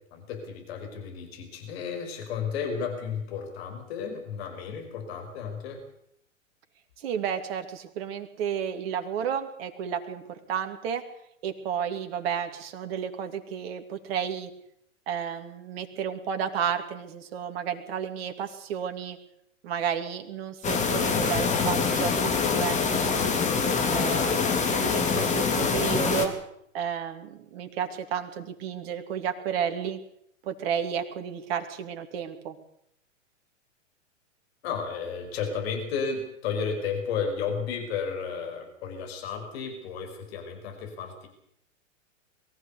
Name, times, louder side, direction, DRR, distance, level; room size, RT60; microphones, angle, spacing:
voice 1, 0.1-5.8 34.6-41.3, left 6 dB, 50° left, 5 dB, 5.3 m, -33 dB
voice 2, 7.0-11.0 11.4-14.5 15.1-19.2 19.6-23.4 23.9-26.3 26.7-30.0 30.4-32.6, right 8 dB, 50° right, 6 dB, 2.8 m, -32 dB
sound 1, 20.6-26.3, left 5 dB, 20° left, 3.2 m, -25 dB
22.5 x 15.5 x 8.3 m, 0.75 s
figure-of-eight pair, 105°, 38 cm